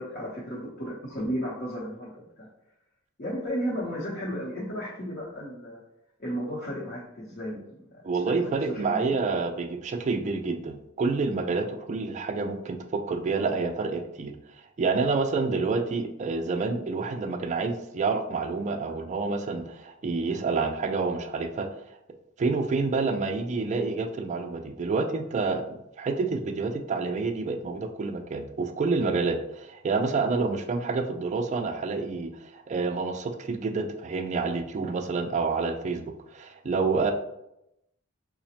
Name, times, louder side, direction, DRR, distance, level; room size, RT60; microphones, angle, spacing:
voice 1, 0.0-2.5 3.2-5.8 6.2-8.0 8.4-9.1, equal, 45° left, -7 dB, 0.8 m, -34 dB
voice 2, 8.0-14.3 14.8-21.7 22.4-37.1, right 4 dB, 35° right, 6 dB, 0.3 m, -28 dB
4.9 x 2.1 x 2.8 m, 0.84 s
head